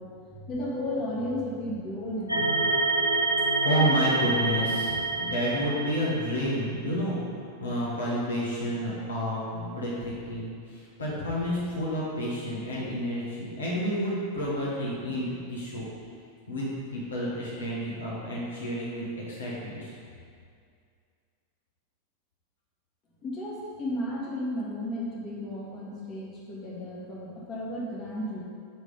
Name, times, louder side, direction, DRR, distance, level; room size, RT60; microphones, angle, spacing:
voice 1, 0.0-3.1 23.2-28.4, left 1 dB, 35° left, -5 dB, 1.4 m, -34 dB
sound 1, 2.3-6.6, right 3 dB, 85° right, 0.6 m, -27 dB
voice 2, 3.6-7.2 7.6-15.8 16.5-19.9, equal, 70° left, -6 dB, 1.1 m, -30 dB
6.0 x 3.2 x 5.4 m, 2.2 s
figure-of-eight pair, 90°, 0 cm